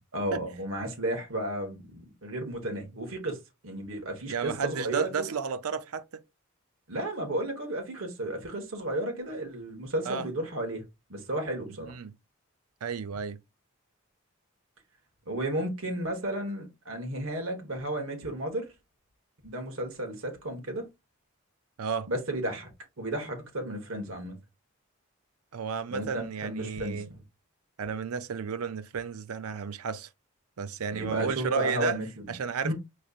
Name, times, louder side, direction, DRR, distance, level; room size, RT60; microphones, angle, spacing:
voice 1, 0.1-5.3 6.9-10.8 11.1-11.9 15.3-18.7 19.4-20.9 22.1-22.7 23.0-24.3 25.9-27.2 30.9-32.3 32.6-32.7, right 1 dB, 70° right, 1.4 m, -33 dB
voice 2, 4.3-6.1 10.1-10.3 11.8-12.1 12.8-13.4 21.8-22.1 25.5-27.1 27.8-30.1 30.6-32.0 32.3-32.7, right 6 dB, 85° right, 0.5 m, -32 dB
5.2 x 3.2 x 2.4 m
head